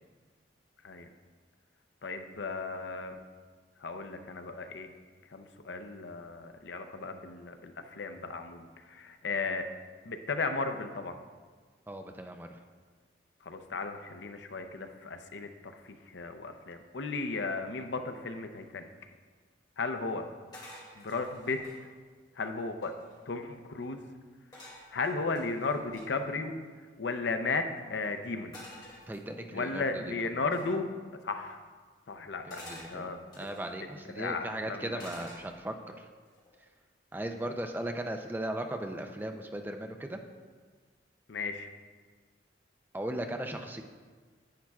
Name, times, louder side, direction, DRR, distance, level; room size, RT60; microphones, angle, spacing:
voice 1, 2.0-3.2 3.8-4.9 5.3-9.7 10.0-11.2 13.4-18.9 19.8-20.3 21.0-21.6 22.4-22.9 23.3-24.1 24.9-26.5 27.0-28.6 29.5-30.9 31.2-31.6 32.1-33.2 34.2-35.0 41.3-41.7, left 3 dB, 75° left, 7 dB, 0.6 m, -35 dB
voice 2, 11.9-12.6 29.1-30.0 30.4-30.5 32.4-33.1 33.3-36.1 37.1-40.2 42.9-43.8, right 1 dB, 10° right, 5 dB, 0.4 m, -37 dB
sound 1, 20.5-21.8 22.4-22.5 22.7-23.3 24.5-26.1 28.5-29.6 30.5-30.8 32.5-33.7 35.0-35.8 36.3-36.6, left 1 dB, 20° left, 2.1 m, -50 dB
10.5 x 8.6 x 2.3 m, 1.5 s
head